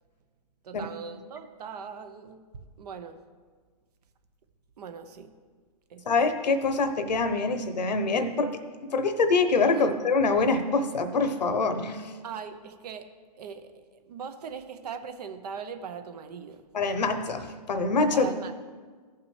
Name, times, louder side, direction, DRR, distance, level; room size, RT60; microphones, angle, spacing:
voice 1, 0.6-2.4 2.8-3.2 4.8-5.3 5.9-6.1 9.7-9.9 12.2-13.1 13.4-16.6 18.1-18.5, right 6 dB, 70° right, 10 dB, 0.9 m, -40 dB
voice 2, 6.1-8.5 8.9-12.1 16.7-18.3, left 3 dB, 90° left, 9 dB, 1.0 m, -25 dB
15.0 x 5.7 x 3.3 m, 1.5 s
hypercardioid pair, 135°, 21 cm